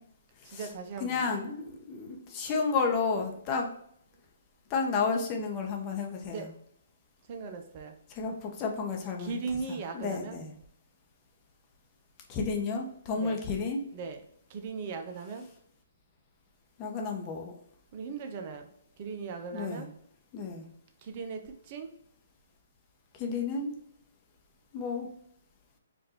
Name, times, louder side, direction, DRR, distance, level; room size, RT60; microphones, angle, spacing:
voice 1, 0.4-1.3 6.2-6.5 7.3-8.0 9.2-10.4 13.1-13.4 13.9-14.2 14.5-15.5 17.9-19.9 21.0-21.9, right 5 dB, 40° right, 5 dB, 0.6 m, -38 dB
voice 2, 1.0-3.7 4.7-6.5 8.1-9.3 9.7-10.5 12.3-13.8 16.8-17.5 19.5-19.8 20.3-20.6 23.1-23.7 24.7-25.1, left 4 dB, 30° left, 2 dB, 0.8 m, -31 dB
4.7 x 2.5 x 3.0 m, 0.68 s
hypercardioid pair, 140°, 0 cm